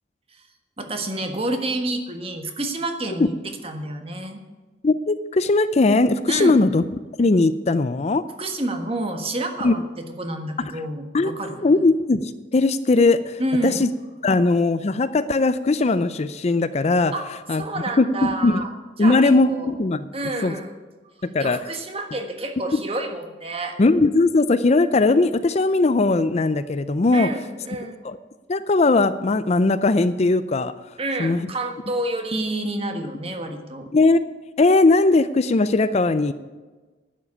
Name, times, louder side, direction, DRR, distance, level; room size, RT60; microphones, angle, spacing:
voice 1, 0.8-4.4 6.3-6.6 8.4-11.8 13.4-13.8 17.1-17.3 17.5-18.7 19.0-19.7 20.1-20.8 21.2-23.8 27.1-28.0 31.0-33.9, right 1 dB, 30° right, 5 dB, 1.4 m, -29 dB
voice 2, 4.8-6.8 7.2-8.2 9.6-9.7 11.1-13.9 14.2-17.1 17.5-17.6 18.0-18.6 19.0-20.0 20.4-20.5 21.2-21.6 23.8-27.3 28.0-28.2 28.5-30.7 31.2-31.5 33.9-34.2 34.6-36.3, left 3 dB, 35° left, 13 dB, 0.4 m, -19 dB
11.0 x 7.5 x 9.7 m, 1.3 s
head